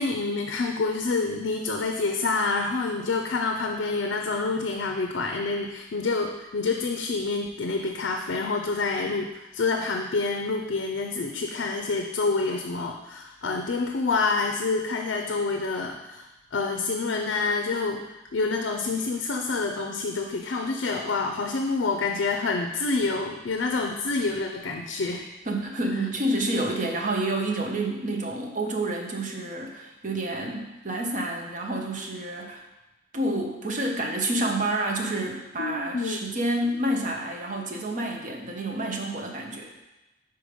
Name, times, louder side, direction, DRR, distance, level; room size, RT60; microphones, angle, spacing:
voice 1, 0.0-18.0 18.3-25.2 35.6-36.2, left 3 dB, 65° left, 4 dB, 0.5 m, -27 dB
voice 2, 25.5-32.6 33.1-39.7, right 1 dB, 45° right, 1 dB, 0.9 m, -29 dB
5.2 x 4.4 x 5.0 m, 1.0 s
head